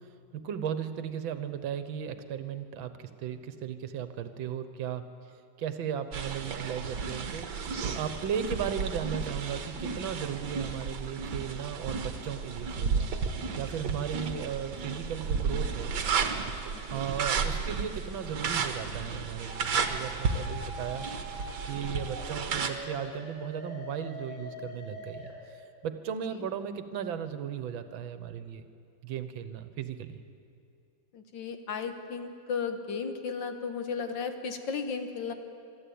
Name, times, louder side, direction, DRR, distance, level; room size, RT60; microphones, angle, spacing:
voice 1, 0.3-5.1 5.6-13.1 13.6-15.9 16.9-21.4 21.7-28.7 29.0-30.2, right 8 dB, 80° right, 11 dB, 1.7 m, -36 dB
sound 1, 6.1-22.7, right 5 dB, 65° right, 1.7 m, -33 dB
sound 2, 19.5-25.3, equal, 35° left, 4.3 m, -44 dB
voice 2, 31.1-35.3, left 5 dB, 70° left, 7 dB, 1.9 m, -35 dB
23.5 x 13.0 x 8.6 m, 2.5 s
omnidirectional pair, 2.1 m